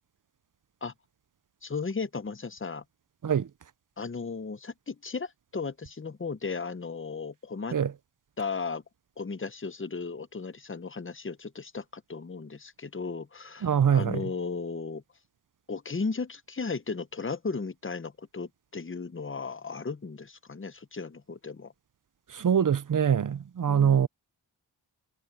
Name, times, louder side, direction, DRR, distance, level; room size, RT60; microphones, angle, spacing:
voice 1, 1.6-2.8 4.0-7.8 8.4-8.8 9.2-15.0 15.7-21.7 23.7-24.1, left 4 dB, 25° left, 0.8 m, -35 dB
voice 2, 13.6-14.2 22.3-24.1, right 8 dB, 45° right, 0.5 m, -24 dB
wide cardioid pair, 75°, 45 cm